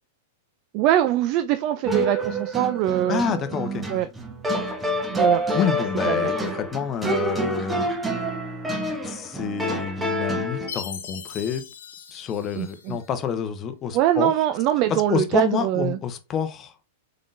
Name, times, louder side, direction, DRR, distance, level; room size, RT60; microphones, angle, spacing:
voice 1, 0.7-3.2 3.9-4.1 5.1-5.4 6.1-6.3 12.6-13.0 13.9-16.0, right 12 dB, 45° right, 0.4 m, -23 dB
sound 1, 1.8-10.7, right 1 dB, 10° right, 1.0 m, -27 dB
voice 2, 3.1-3.8 5.5-7.9 9.1-11.6 12.1-14.3 15.1-16.7, left 7 dB, 30° left, 0.7 m, -28 dB
Chime, 10.7-13.1, left 7 dB, 80° left, 0.8 m, -39 dB
3.7 x 3.6 x 2.6 m
hypercardioid pair, 120°, 0 cm